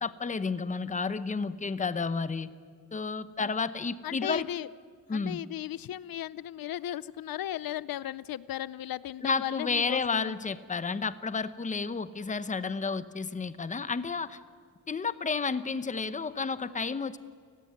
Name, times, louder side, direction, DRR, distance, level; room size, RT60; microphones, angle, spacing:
voice 1, 0.0-2.5 2.9-4.5 5.1-5.4 9.2-14.4 14.9-17.2, left 4 dB, 20° left, 13 dB, 0.9 m, -31 dB
voice 2, 4.0-4.7 5.1-10.3, left 12 dB, 75° left, 18 dB, 0.6 m, -36 dB
30.0 x 19.0 x 9.7 m, 2.2 s
wide cardioid pair, 170°, 35 cm